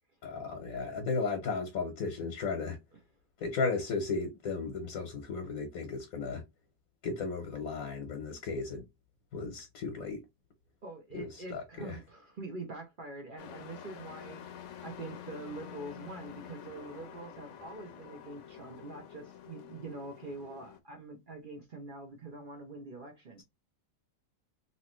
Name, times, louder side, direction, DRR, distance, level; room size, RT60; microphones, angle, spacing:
voice 1, 0.2-2.8 3.4-6.4 7.0-8.8 9.3-10.2 11.1-12.0, left 4 dB, 85° left, 1.3 m, -35 dB
voice 2, 10.8-23.4, right 2 dB, 45° right, 0.8 m, -45 dB
Truck, 13.4-20.8, left 9 dB, 65° left, 0.9 m, -48 dB
3.0 x 2.8 x 3.0 m
omnidirectional pair, 1.4 m